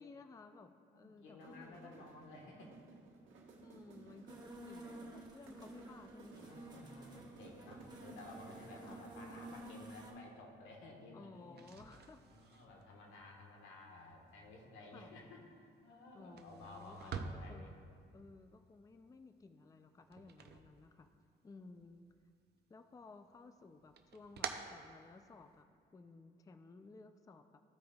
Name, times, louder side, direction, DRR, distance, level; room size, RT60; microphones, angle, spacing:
voice 1, 0.0-2.1 3.6-6.5 8.8-9.1 11.1-12.2 14.9-15.1 16.1-17.7 18.1-21.1 21.4-22.1 22.7-27.6, left 3 dB, 15° left, 8 dB, 0.4 m, -57 dB
voice 2, 0.9-2.7 3.5-3.9 4.6-4.9 6.4-11.6 12.2-17.7 20.9-21.1, left 2 dB, 85° left, 0 dB, 1.4 m, -55 dB
sound 1, 1.3-9.9, right 3 dB, 80° right, 1.3 m, -56 dB
sound 2, 4.3-10.1, right 1 dB, 20° right, 1.6 m, -53 dB
sound 3, 11.4-21.5 21.8-22.6 23.0-25.6, right 6 dB, 55° right, 0.6 m, -50 dB
14.5 x 5.0 x 2.3 m, 2.3 s
cardioid pair, 90°, 20 cm